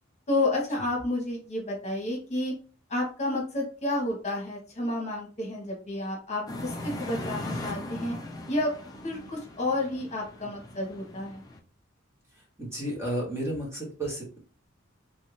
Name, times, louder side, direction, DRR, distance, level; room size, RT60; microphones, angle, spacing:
voice 1, 0.3-2.5 2.9-8.1 8.5-8.7 9.0-11.4, left 2 dB, 35° left, -2 dB, 1.2 m, -30 dB
sound 1, 6.5-11.6, left 1 dB, 20° left, 0.5 m, -39 dB
voice 2, 12.6-14.4, right 1 dB, 15° right, -4 dB, 1.2 m, -32 dB
3.2 x 2.7 x 3.1 m, 0.38 s
head